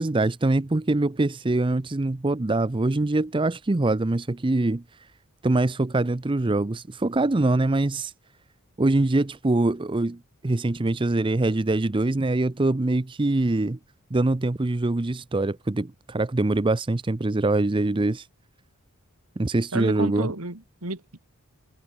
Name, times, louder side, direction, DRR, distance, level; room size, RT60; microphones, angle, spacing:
voice 1, 0.0-4.8 5.4-8.1 8.8-10.2 10.4-13.8 14.1-18.3 19.4-20.3, right 2 dB, 25° right, 0.6 m, -23 dB
voice 2, 19.7-21.2, right 2 dB, 80° right, 3.7 m, -31 dB
head